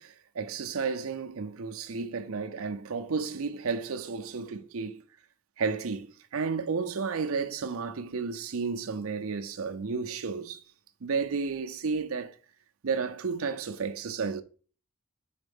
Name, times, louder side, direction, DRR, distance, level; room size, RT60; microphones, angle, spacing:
voice 1, 0.0-5.0 5.6-10.6 11.0-12.3 12.8-14.4, right 5 dB, 85° right, 0.6 m, -32 dB
4.6 x 4.3 x 5.3 m
head